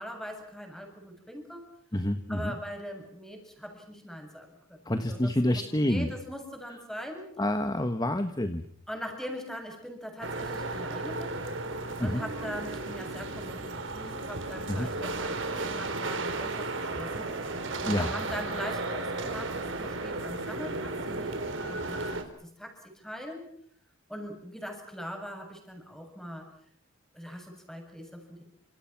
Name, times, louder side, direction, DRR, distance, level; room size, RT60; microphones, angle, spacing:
voice 1, 0.0-1.7 2.3-4.8 5.1-7.3 8.9-11.4 12.0-17.3 17.8-22.0 22.4-23.5 24.1-26.5 27.1-28.4, equal, ahead, 3 dB, 7.3 m, -41 dB
voice 2, 1.9-2.5 4.8-6.1 7.4-8.6 12.0-12.2 14.7-14.9 17.9-18.1, left 1 dB, 20° left, 8 dB, 1.4 m, -28 dB
sound 1, 10.2-22.2, right 2 dB, 65° right, 4.1 m, -34 dB
28.5 x 27.0 x 6.1 m, 0.65 s
head